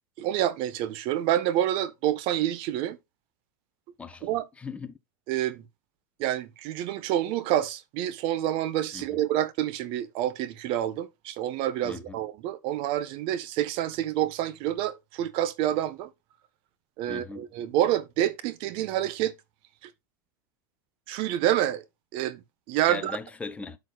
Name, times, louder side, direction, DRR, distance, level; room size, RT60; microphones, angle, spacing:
voice 1, 0.2-3.0 4.2-4.4 5.3-5.6 6.2-16.1 17.0-19.3 19.8-19.9 21.1-21.8 22.1-22.4 22.7-23.2, right 12 dB, 55° right, 1.2 m, -28 dB
voice 2, 4.0-4.9 8.9-9.2 11.8-12.2 17.1-17.5 22.9-23.8, left 4 dB, 10° left, 0.9 m, -39 dB
13.0 x 4.6 x 2.3 m
supercardioid pair, 125°, 11 cm